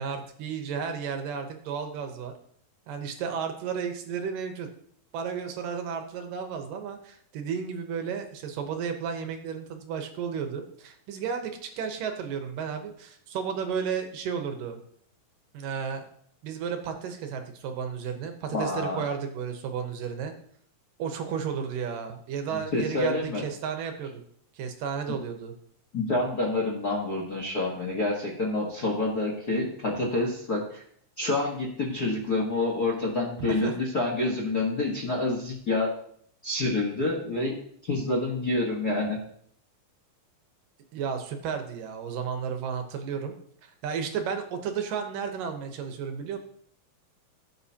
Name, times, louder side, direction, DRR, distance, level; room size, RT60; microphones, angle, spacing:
voice 1, 0.0-2.3 2.9-4.7 5.1-14.8 15.5-16.0 16.4-20.3 21.0-24.2 24.6-25.5 33.6-33.7 40.9-43.3 43.6-46.4, right 7 dB, 75° right, 5 dB, 2.6 m, -33 dB
voice 2, 18.5-19.0 22.5-23.4 25.9-30.8 31.2-35.9 36.4-37.5 37.8-39.2, left 2 dB, 50° left, -1 dB, 1.2 m, -28 dB
16.0 x 7.9 x 2.9 m, 0.64 s
omnidirectional pair, 4.1 m